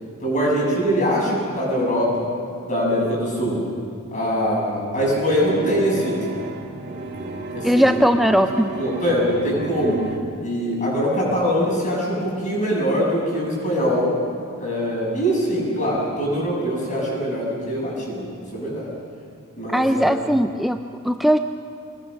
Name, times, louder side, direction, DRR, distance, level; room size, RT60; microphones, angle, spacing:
voice 1, 0.2-2.3 2.6-3.7 4.1-6.2 6.8-7.9 8.7-10.0 10.4-14.1 14.6-18.3 18.5-18.9 19.6-20.2, equal, 35° left, -3 dB, 7.6 m, -23 dB
sound 1, 5.0-10.2, right 3 dB, 45° right, 1.8 m, -33 dB
voice 2, 7.6-8.7 19.7-21.4, equal, ahead, 6 dB, 0.4 m, -19 dB
26.0 x 20.5 x 6.5 m, 2.5 s
head